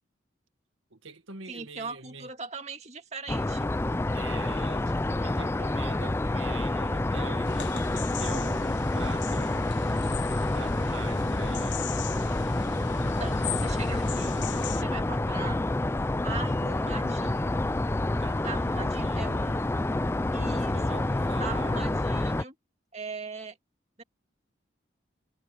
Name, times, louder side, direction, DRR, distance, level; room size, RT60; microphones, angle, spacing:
voice 1, 0.9-2.3 4.1-9.6 10.4-11.8 18.2-19.7 20.4-21.8, right 4 dB, 90° right, 1.8 m, -45 dB
voice 2, 1.5-3.7 13.0-14.4 14.8-15.6 16.2-17.6 18.4-19.5 20.3-21.0 21.4-22.6 22.9-23.6 24.0-24.1, right 4 dB, 35° right, 2.1 m, -40 dB
sound 1, 3.3-22.4, left 2 dB, 15° left, 0.3 m, -28 dB
sound 2, 7.5-14.8, left 7 dB, 70° left, 1.0 m, -39 dB
head